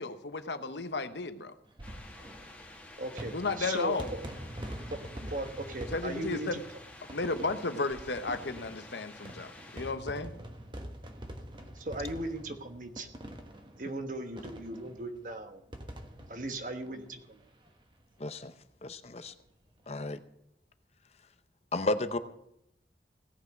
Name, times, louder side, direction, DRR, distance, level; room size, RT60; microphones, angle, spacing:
voice 1, 0.0-1.5 3.3-4.1 5.9-6.6 7.1-10.3, left 3 dB, 80° left, 10 dB, 1.0 m, -34 dB
sound 1, 1.7-17.7 18.0-18.1 18.3-18.4 19.7-19.9, equal, 25° right, 1.2 m, -45 dB
sound 2, 1.8-9.9, left 2 dB, 10° left, 1.6 m, -51 dB
voice 2, 3.0-4.2 4.8-6.6 11.7-13.1 13.8-15.6 16.3-17.4, right 2 dB, 45° right, 7 dB, 1.3 m, -38 dB
voice 3, 18.2-18.5 18.8-19.3 19.9-20.2 21.7-22.2, left 2 dB, 35° left, 11 dB, 0.6 m, -32 dB
17.0 x 5.9 x 7.9 m, 0.78 s
head